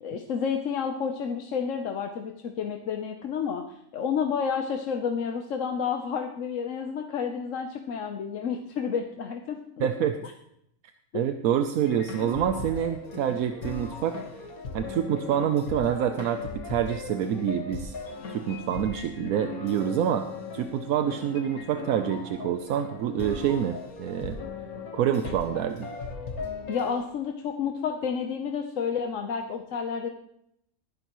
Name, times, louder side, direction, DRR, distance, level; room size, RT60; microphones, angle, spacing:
voice 1, 0.0-9.9 10.2-10.3 11.1-11.2 26.7-30.1, left 6 dB, 65° left, 4 dB, 1.2 m, -30 dB
voice 2, 9.8-10.2 11.1-14.2 14.7-16.4 16.6-17.9 18.3-20.3 20.5-24.4 24.9-25.9, right 9 dB, 80° right, 8 dB, 1.1 m, -27 dB
sound 1, 11.8-27.1, left 4 dB, 90° left, 1.9 m, -38 dB
19.5 x 10.5 x 3.0 m, 0.76 s
omnidirectional pair, 1.5 m